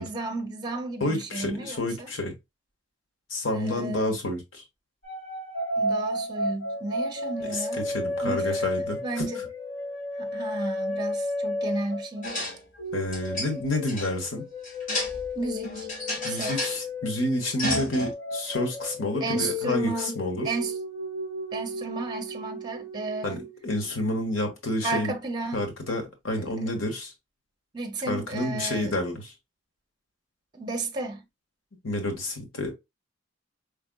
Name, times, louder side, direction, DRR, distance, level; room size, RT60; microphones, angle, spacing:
voice 1, 0.0-2.1 3.5-4.2 5.8-7.9 8.2-8.6 9.0-9.4 10.2-12.4 15.3-15.9 16.2-16.5 19.2-20.1 20.4-20.8 21.5-23.5 24.8-25.6 26.3-26.4 27.7-29.0 30.5-31.3, right 3 dB, 20° right, 0.7 m, -33 dB
voice 2, 1.0-2.3 3.3-4.6 7.4-9.2 12.9-14.5 16.2-20.5 23.2-25.1 25.5-27.1 28.1-29.3 31.8-32.7, left 1 dB, 80° left, 1.5 m, -29 dB
sound 1, 5.0-12.4 12.7-23.9, left 1 dB, 55° left, 2.3 m, -33 dB
sound 2, 12.2-12.6 12.9-14.1 14.6-15.4 15.6-16.8 17.6-18.1, left 1 dB, 40° left, 1.7 m, -32 dB
5.0 x 3.4 x 2.3 m
head